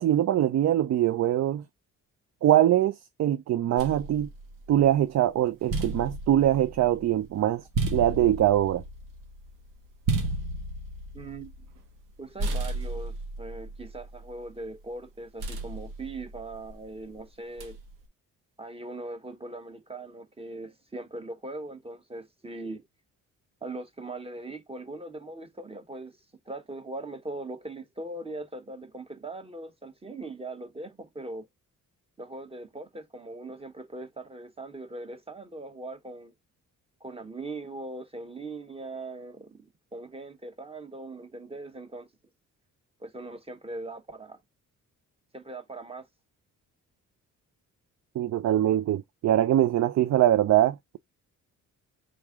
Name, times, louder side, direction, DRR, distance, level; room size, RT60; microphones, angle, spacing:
voice 1, 0.0-1.6 2.4-4.3 4.7-7.6 7.9-8.8 48.2-51.0, right 12 dB, 55° right, 0.5 m, -23 dB
sound 1, 3.8-5.0 5.5-12.1 12.4-14.7 15.4-16.9 17.6-18.1, right 2 dB, 85° right, 1.3 m, -34 dB
voice 2, 11.1-11.5 12.2-17.8 18.6-22.8 23.6-26.2 26.4-31.5 32.2-36.3 37.0-39.6 39.9-42.1 43.0-44.4 45.3-46.1, right 2 dB, 20° right, 1.1 m, -40 dB
3.7 x 3.1 x 3.5 m
cardioid pair, 95°, 32 cm